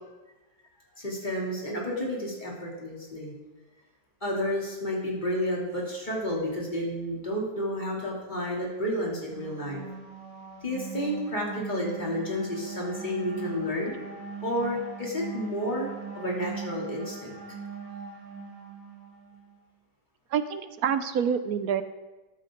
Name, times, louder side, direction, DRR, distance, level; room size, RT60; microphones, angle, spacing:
voice 1, 1.0-3.3 4.2-9.8 10.6-13.9 14.4-15.9 16.1-17.3, equal, 25° left, -3 dB, 3.2 m, -31 dB
sound 1, 8.9-19.5, right 5 dB, 30° right, 4.0 m, -40 dB
voice 2, 20.3-21.8, right 7 dB, 65° right, 11 dB, 1.0 m, -27 dB
14.0 x 11.5 x 3.9 m, 1.1 s
omnidirectional pair, 1.9 m